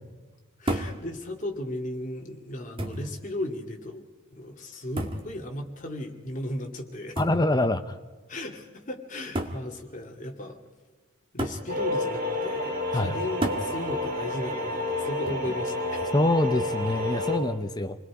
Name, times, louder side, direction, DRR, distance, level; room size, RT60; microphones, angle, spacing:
voice 1, 0.6-4.0 4.3-7.2 8.3-10.6 11.3-16.0, left 1 dB, 35° left, 2 dB, 2.5 m, -36 dB
sound 1, 0.7-1.0 2.0-2.1 2.8-3.1 5.0-5.3 7.2-7.4 8.5-8.6 9.3-9.6 11.4-11.7 13.4-13.7 15.3-15.6, right 1 dB, 25° right, 1.8 m, -31 dB
voice 2, 7.2-8.0 12.9-13.1 16.1-18.0, left 1 dB, 20° left, 10 dB, 0.7 m, -25 dB
sound 2, 11.7-17.4, left 1 dB, 40° right, 3.9 m, -30 dB
29.0 x 21.0 x 4.9 m, 1.3 s
head